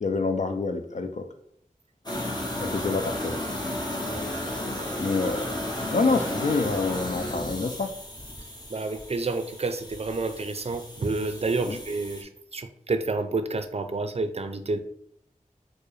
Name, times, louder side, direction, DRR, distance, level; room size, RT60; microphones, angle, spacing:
voice 1, 0.0-1.3 2.6-3.4 5.0-5.5 5.9-7.9 11.7-11.8, left 3 dB, 60° left, 6 dB, 0.4 m, -27 dB
sound 1, 2.1-12.2, left 1 dB, 30° left, 0.9 m, -34 dB
voice 2, 8.7-14.8, right 3 dB, 50° right, 9 dB, 0.4 m, -29 dB
4.4 x 2.1 x 3.1 m, 0.67 s
wide cardioid pair, 40°, 14 cm